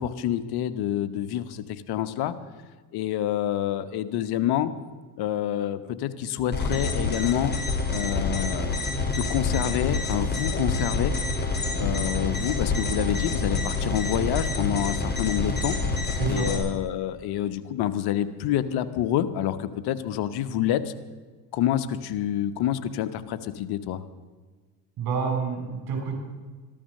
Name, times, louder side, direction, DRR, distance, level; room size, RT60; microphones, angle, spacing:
voice 1, 0.0-2.3 2.9-4.7 5.2-7.5 7.9-8.8 9.1-11.1 11.8-15.8 16.3-20.9 21.5-24.0, left 11 dB, 55° left, 11 dB, 1.2 m, -27 dB
sound 1, 6.5-16.6, left 3 dB, 20° left, 4.0 m, -27 dB
voice 2, 25.0-26.2, right 5 dB, 55° right, 3 dB, 6.1 m, -28 dB
14.0 x 12.5 x 6.6 m, 1.4 s
hypercardioid pair, 80°, 45 cm